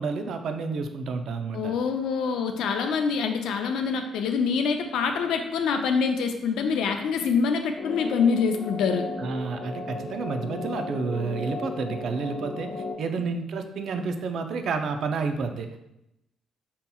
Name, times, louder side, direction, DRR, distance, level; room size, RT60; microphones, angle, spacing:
voice 1, 0.0-1.7 9.2-12.7 13.0-15.7, right 4 dB, 65° right, 7 dB, 0.4 m, -30 dB
voice 2, 1.5-9.1, left 5 dB, 85° left, 5 dB, 0.4 m, -25 dB
sound 1, 7.8-12.9, left 2 dB, 40° left, 0.7 m, -35 dB
5.4 x 2.8 x 2.3 m, 0.86 s
cardioid pair, 90°, 0 cm